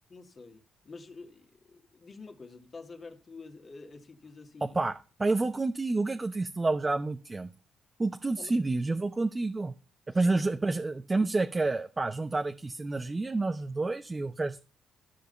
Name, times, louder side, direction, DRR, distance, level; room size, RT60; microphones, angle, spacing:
voice 1, 0.1-4.8 8.4-8.6 10.1-10.4, left 4 dB, 40° left, 2.1 m, -48 dB
voice 2, 5.2-7.5 8.0-9.7 10.1-14.6, right 3 dB, 20° right, 0.8 m, -29 dB
13.0 x 4.9 x 6.9 m
cardioid pair, 90°, 0 cm